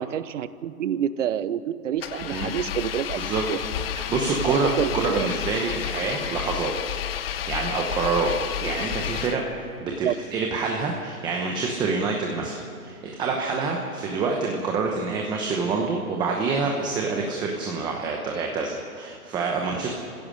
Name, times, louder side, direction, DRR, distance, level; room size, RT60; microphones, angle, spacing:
voice 1, 0.0-3.2 3.5-3.6 4.4-5.3 10.0-10.1, right 10 dB, 55° right, 15 dB, 0.9 m, -28 dB
Engine, 2.0-9.7, left 10 dB, 40° left, 0.8 m, -31 dB
voice 2, 3.9-6.7 7.1-8.3 8.6-9.4 9.8-20.0, right 4 dB, 10° right, 1 dB, 0.9 m, -27 dB
28.0 x 16.0 x 6.4 m, 2.4 s
hypercardioid pair, 155°, 45 cm